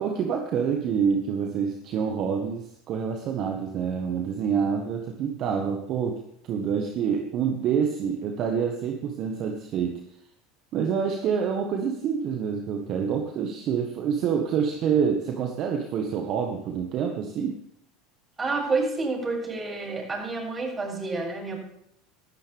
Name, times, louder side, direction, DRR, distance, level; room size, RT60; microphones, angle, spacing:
voice 1, 0.0-10.0 10.7-17.6, right 7 dB, 50° right, 4 dB, 1.7 m, -27 dB
voice 2, 18.4-21.6, right 3 dB, 25° right, -1 dB, 7.4 m, -29 dB
17.0 x 13.5 x 3.6 m, 0.75 s
hypercardioid pair, 85°, 0 cm